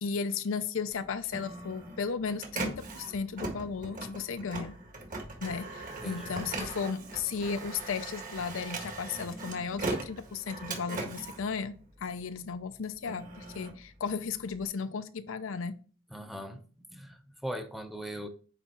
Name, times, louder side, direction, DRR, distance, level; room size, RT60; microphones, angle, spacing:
voice 1, 0.0-4.7 5.4-15.8, left 5 dB, 70° left, 0.5 m, -35 dB
Printer, 0.9-12.3 12.8-14.7, right 2 dB, 40° right, 1.7 m, -39 dB
voice 2, 6.0-6.4 16.1-18.3, equal, ahead, 0.7 m, -40 dB
9.2 x 3.6 x 4.4 m
head